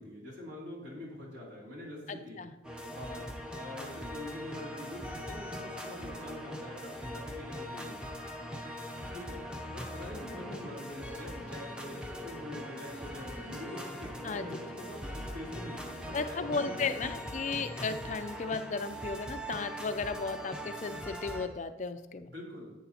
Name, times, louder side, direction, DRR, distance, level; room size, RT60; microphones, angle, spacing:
voice 1, 0.0-2.4 2.9-8.1 9.1-9.4 9.7-17.3 22.2-22.7, left 1 dB, 75° right, -4 dB, 3.0 m, -45 dB
voice 2, 2.1-2.5 14.2-14.6 16.1-22.3, left 4 dB, 40° left, 10 dB, 0.4 m, -35 dB
sound 1, 2.6-21.5, equal, 5° right, 0.6 m, -41 dB
11.0 x 8.6 x 2.8 m, 1.1 s
head